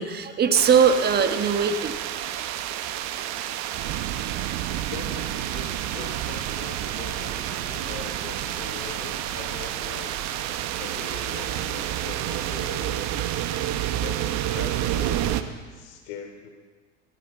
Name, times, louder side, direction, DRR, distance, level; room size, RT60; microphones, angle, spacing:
voice 1, 0.0-2.0, right 6 dB, 25° right, 8 dB, 1.4 m, -20 dB
sound 1, 0.5-15.4, right 12 dB, 45° right, 1.1 m, -29 dB
voice 2, 4.5-10.5 10.8-13.3 14.0-16.5, left 7 dB, 65° left, 5 dB, 3.2 m, -41 dB
18.5 x 13.5 x 5.6 m, 1.4 s
hypercardioid pair, 105°, 38 cm